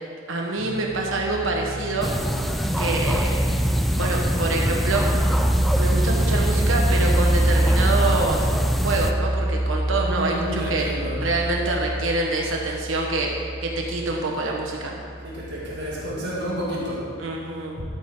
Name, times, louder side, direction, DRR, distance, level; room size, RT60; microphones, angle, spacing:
voice 1, 0.3-2.1 2.8-3.5 4.0-5.0 5.8-8.5 8.8-10.9 11.2-13.3 13.6-14.9 17.2-17.8, right 2 dB, 80° right, 0 dB, 1.2 m, -26 dB
sound 1, 0.6-16.0, right 1 dB, 40° right, 2.5 m, -26 dB
sound 2, 2.0-9.1, equal, ahead, 0.5 m, -25 dB
voice 2, 10.1-11.2 15.2-17.1 17.8-17.9, equal, 60° right, -6 dB, 2.2 m, -30 dB
13.0 x 8.3 x 3.8 m, 2.4 s
head